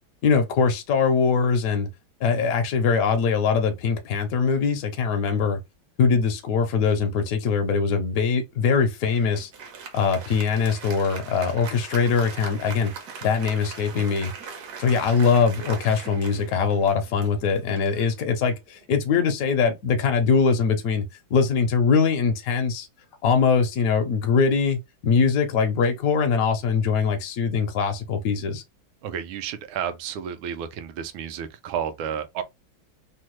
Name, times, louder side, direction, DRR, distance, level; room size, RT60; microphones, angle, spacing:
voice 1, 0.2-1.9 2.2-5.6 6.0-9.5 9.9-12.9 13.2-14.3 14.8-22.9 23.2-28.6, left 5 dB, 70° left, 0.8 m, -22 dB
Applause, 9.0-18.8, right 6 dB, 65° right, 1.1 m, -41 dB
voice 2, 29.0-32.4, right 8 dB, 85° right, 1.4 m, -31 dB
3.6 x 2.1 x 3.0 m
omnidirectional pair, 2.2 m